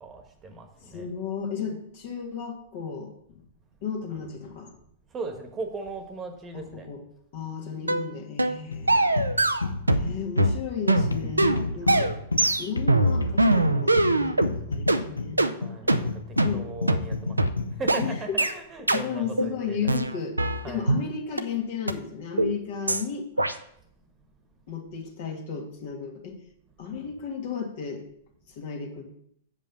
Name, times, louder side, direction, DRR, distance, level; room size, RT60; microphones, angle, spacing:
voice 1, 0.0-1.1 5.1-6.9 11.8-12.2 15.6-17.4 17.8-19.9 20.6-20.9, right 3 dB, 20° right, 5 dB, 1.3 m, -38 dB
voice 2, 0.8-3.4 3.8-4.7 6.5-7.0 7.3-9.2 10.0-12.1 12.6-15.4 15.7-16.0 16.4-16.7 18.0-18.4 18.9-20.4 20.6-23.5 24.7-26.4 26.8-28.0 28.5-29.0, left 6 dB, 50° left, 2 dB, 1.9 m, -34 dB
sound 1, 7.9-8.1 8.4-8.6 8.9-10.1 10.4-14.5 14.9-15.0 15.4-15.5 15.9-16.0 16.4-16.5 16.9-17.0 17.4-17.5 17.9-18.0 18.4-18.5 18.9-19.0 19.4-19.5 19.9-21.0 21.4-21.5 21.9-22.0 22.4-22.5 22.9-23.0 23.4-23.5, right 2 dB, 85° right, 0.5 m, -22 dB
sound 2, 8.7-18.3, left 3 dB, 80° left, 0.7 m, -31 dB
7.1 x 5.2 x 6.7 m, 0.71 s
figure-of-eight pair, 100°, 0 cm